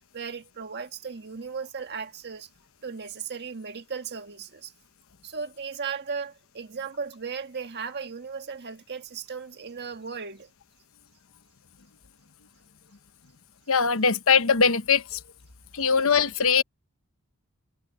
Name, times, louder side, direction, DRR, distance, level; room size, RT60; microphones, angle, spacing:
voice 1, 0.0-2.5 2.8-4.7 5.2-10.5, right 5 dB, 50° right, 1.5 m, -36 dB
voice 2, 13.7-15.2 15.7-16.6, left 6 dB, 65° left, 1.0 m, -21 dB
head